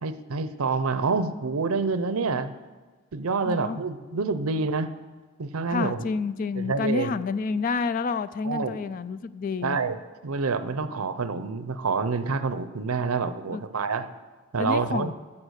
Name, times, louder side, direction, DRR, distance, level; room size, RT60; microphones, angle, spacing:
voice 1, 0.0-2.5 3.1-4.9 5.4-6.1 6.6-7.1 8.4-8.8 9.6-14.1 14.5-15.1, right 4 dB, 85° right, 12 dB, 0.7 m, -27 dB
voice 2, 3.4-3.8 5.7-9.8 13.5-13.7 14.6-15.1, left 4 dB, 40° left, 15 dB, 0.3 m, -29 dB
11.5 x 7.2 x 6.4 m, 1.4 s
head